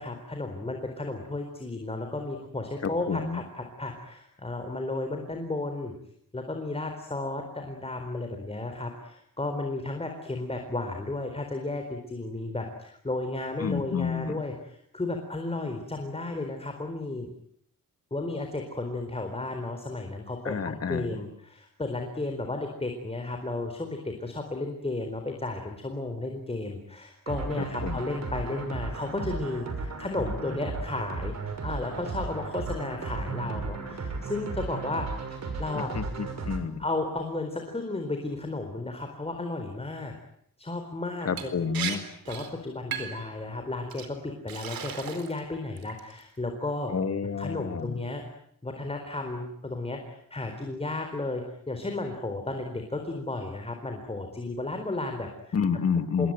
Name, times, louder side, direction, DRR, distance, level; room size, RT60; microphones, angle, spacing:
voice 1, 0.0-5.9 6.3-17.3 18.1-35.1 35.6-35.9 36.8-40.1 40.6-41.5 41.8-42.0 42.3-46.9 47.2-48.2 48.6-55.5 56.2-56.3, left 2 dB, 15° left, 4 dB, 4.2 m, -33 dB
voice 2, 2.8-3.4 13.6-14.4 20.4-21.1 27.8-28.0 35.7-36.8 41.2-42.0 46.9-48.0 55.5-56.3, left 6 dB, 45° left, 9 dB, 2.7 m, -29 dB
sound 1, 27.3-36.6, right 4 dB, 50° right, 6.3 m, -35 dB
Liquid, 41.4-41.5 41.7-42.0 42.2-42.5 42.9-43.2 43.9-44.1 44.5-45.4 45.8-46.2, right 8 dB, 90° right, 4.4 m, -35 dB
27.5 x 22.5 x 9.3 m, 0.72 s
wide cardioid pair, 120°, 34 cm